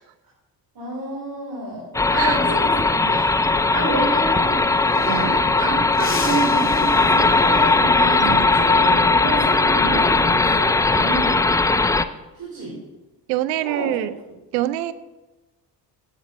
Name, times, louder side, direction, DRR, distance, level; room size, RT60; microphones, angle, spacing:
voice 1, 0.8-11.4 12.3-12.8 13.6-14.0, right 2 dB, 45° right, -4 dB, 3.6 m, -29 dB
sound 1, 1.9-12.0, left 3 dB, 10° left, 0.3 m, -18 dB
sound 2, 4.3-4.4 4.6-5.5 5.9-7.7 10.2-10.5 11.9-12.4, left 3 dB, 25° left, 2.2 m, -37 dB
voice 2, 8.2-8.5 13.3-14.2 14.5-14.9, right 14 dB, 90° right, 14 dB, 0.6 m, -25 dB
9.0 x 8.0 x 5.4 m, 1.1 s
hypercardioid pair, 60°, 47 cm